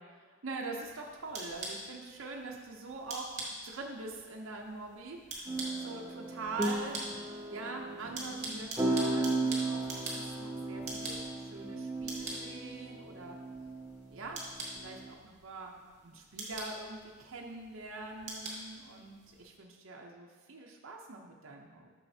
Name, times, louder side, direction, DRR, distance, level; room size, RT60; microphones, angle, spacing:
voice 1, 0.0-3.3 3.6-13.4 14.1-14.4 14.8-21.9, right 3 dB, 75° right, 0 dB, 0.7 m, -44 dB
sound 1, 0.7-19.5, right 2 dB, 35° right, 1.5 m, -45 dB
sound 2, 5.5-15.1, right 2 dB, 15° right, 0.6 m, -36 dB
8.9 x 6.3 x 2.7 m, 1.5 s
head